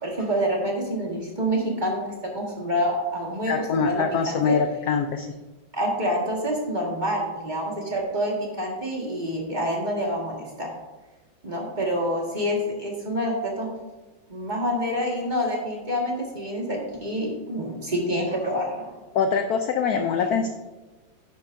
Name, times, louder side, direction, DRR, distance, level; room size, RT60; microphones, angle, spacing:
voice 1, 0.0-2.0 2.3-4.6 5.7-10.7 11.4-13.7 14.3-18.9 20.3-20.4, equal, 25° right, -2 dB, 1.7 m, -27 dB
voice 2, 3.5-5.3 19.1-20.5, left 5 dB, 80° left, 6 dB, 0.8 m, -23 dB
10.0 x 9.9 x 2.6 m, 1.2 s
omnidirectional pair, 2.2 m